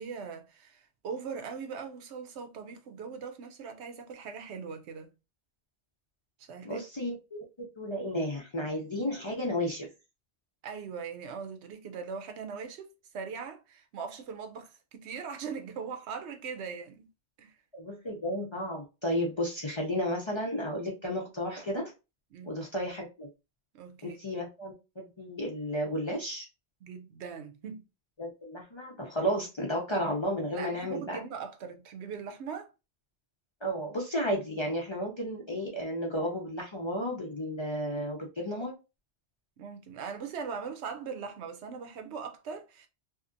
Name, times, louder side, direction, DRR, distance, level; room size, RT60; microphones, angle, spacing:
voice 1, 0.0-5.1 6.5-6.8 10.6-12.9 13.1-17.1 17.4-17.6 22.3-22.5 23.7-24.2 26.8-27.8 30.5-32.7 39.6-42.9, right 6 dB, 80° right, 0.9 m, -40 dB
voice 2, 6.6-9.9 17.7-21.9 22.4-23.3 24.0-26.5 28.2-31.2 33.6-38.7, equal, 35° left, 0.5 m, -33 dB
2.7 x 2.4 x 2.5 m
omnidirectional pair, 1.1 m